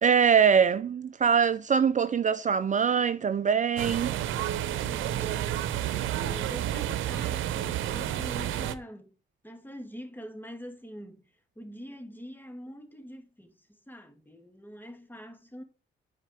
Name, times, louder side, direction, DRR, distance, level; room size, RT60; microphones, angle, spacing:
voice 1, 0.0-4.2, right 7 dB, 40° right, 0.6 m, -23 dB
sound 1, 3.8-8.7, right 12 dB, 85° right, 0.9 m, -30 dB
voice 2, 4.7-5.7 6.2-9.2 9.4-15.6, equal, 10° left, 2.4 m, -44 dB
9.7 x 5.2 x 5.1 m
cardioid pair, 70°, 20 cm